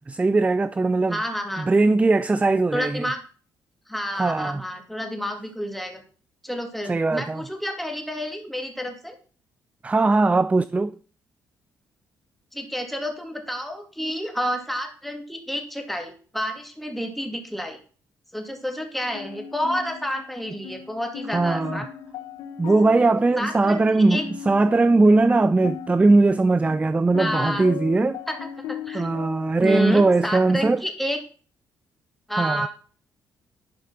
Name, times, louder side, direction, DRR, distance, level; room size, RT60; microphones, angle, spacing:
voice 1, 0.1-1.2 1.6-3.0 4.2-4.6 6.9-7.4 9.8-11.0 21.3-21.9 22.6-24.2 24.5-28.2 28.9-30.8 32.4-32.7, right 3 dB, 20° right, 0.4 m, -20 dB
voice 2, 1.1-1.7 2.7-3.2 3.9-6.0 6.4-9.2 12.5-17.8 18.3-21.9 23.4-24.2 27.2-27.7 28.3-28.4 28.7-29.1 29.6-31.2 32.3-32.7, equal, ahead, 2.5 m, -29 dB
sound 1, 19.1-30.0, left 9 dB, 90° left, 0.9 m, -38 dB
11.5 x 5.0 x 5.8 m
cardioid pair, 75°, 7 cm